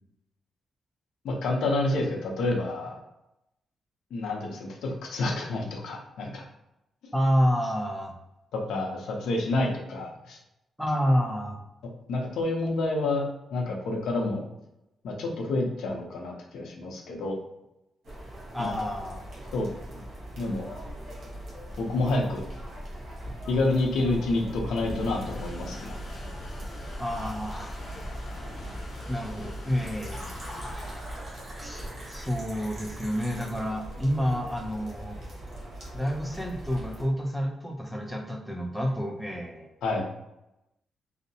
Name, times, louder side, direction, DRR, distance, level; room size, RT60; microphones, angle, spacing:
voice 1, 1.2-3.0 4.1-6.4 7.0-7.1 8.5-10.4 12.1-13.2 13.5-14.4 15.0-17.4 18.6-18.7 19.5-20.0 20.4-20.7 21.8-22.4 23.5-26.0 39.8-40.1, left 2 dB, 85° left, 0 dB, 0.6 m, -28 dB
voice 2, 7.1-8.2 10.8-11.6 18.5-19.2 27.0-27.8 29.1-30.3 31.6-35.2 35.9-39.7, equal, ahead, 1 dB, 0.4 m, -29 dB
sound 1, 18.0-37.1, equal, 55° right, 1.1 m, -41 dB
sound 2, 23.4-35.1, left 1 dB, 55° left, 0.7 m, -43 dB
Fill (with liquid), 29.9-33.7, equal, 25° right, 1.0 m, -44 dB
2.7 x 2.1 x 2.7 m, 0.89 s
wide cardioid pair, 145°, 0 cm